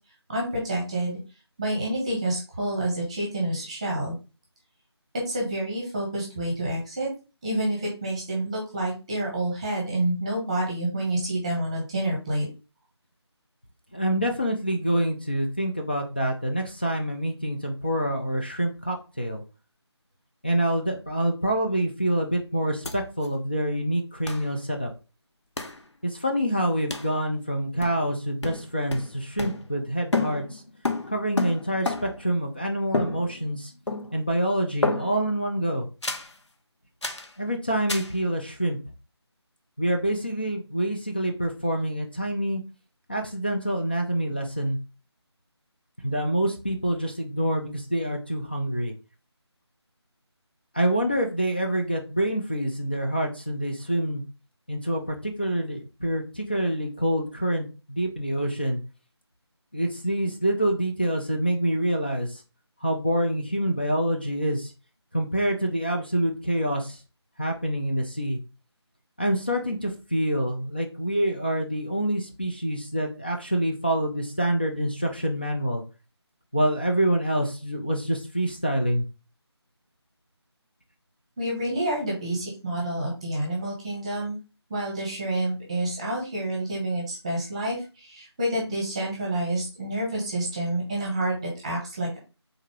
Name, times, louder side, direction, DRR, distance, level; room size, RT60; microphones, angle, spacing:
voice 1, 0.3-1.2 1.6-4.1 5.3-7.1 7.4-12.4 81.4-84.4 84.7-92.2, right 1 dB, 15° right, -2 dB, 0.9 m, -28 dB
voice 2, 13.9-19.4 20.4-24.9 26.0-30.6 31.1-33.7 34.1-35.9 37.4-38.8 39.8-42.6 43.1-44.8 46.0-48.9 50.7-54.2 54.7-58.8 59.7-62.4 62.8-64.7 65.1-67.0 67.4-68.4 69.2-75.8 76.5-79.0, right 1 dB, 20° left, 1 dB, 0.4 m, -26 dB
sound 1, 22.8-22.9 23.2-23.3 24.3-24.5 25.6-25.8 26.9-27.1 27.8-28.1 28.4-29.9 30.1-32.3 32.9-33.6 33.9-34.3 34.8-35.3 36.0-36.3 37.0-37.3 37.9-38.2, left 3 dB, 80° left, 0.9 m, -30 dB
3.7 x 2.8 x 4.7 m, 0.32 s
figure-of-eight pair, 165°, 15 cm